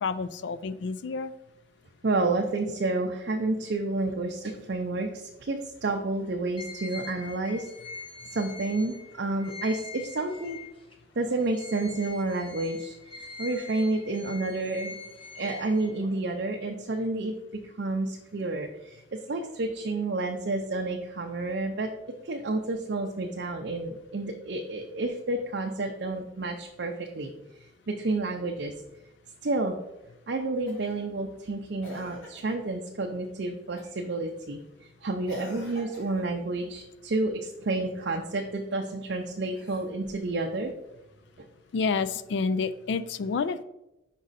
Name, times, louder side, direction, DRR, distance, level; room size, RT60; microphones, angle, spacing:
voice 1, 0.0-1.3 41.7-43.6, left 4 dB, 60° left, 14 dB, 0.3 m, -29 dB
voice 2, 2.0-7.7 8.3-10.6 11.2-15.0 15.4-17.3 17.8-21.9 22.2-27.3 27.9-28.7 29.4-29.7 30.3-34.6 35.0-40.7, right 2 dB, 60° right, 1 dB, 0.5 m, -30 dB
sound 1, 6.6-10.9 11.4-16.2, left 4 dB, 25° left, 0.8 m, -44 dB
Cough, 30.7-31.0 31.8-32.6 33.8-34.1 35.3-36.3 39.4-40.2 41.7-41.8, left 1 dB, 85° left, 1.7 m, -44 dB
5.3 x 5.0 x 4.0 m, 0.91 s
head